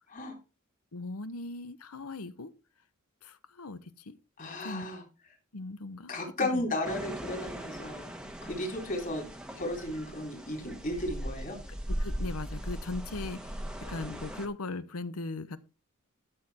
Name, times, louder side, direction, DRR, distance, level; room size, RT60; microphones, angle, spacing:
voice 1, 0.9-2.5 3.2-4.2 4.6-4.9 5.5-6.1 6.4-6.6 11.9-13.5 13.8-15.6, left 3 dB, 80° left, 1.0 m, -39 dB
voice 2, 4.4-5.0 6.1-8.1 8.4-9.3 9.6-11.6, left 1 dB, 40° left, 3.8 m, -34 dB
sound 1, 6.8-14.5, equal, 5° right, 1.3 m, -39 dB
12.5 x 6.8 x 4.3 m
head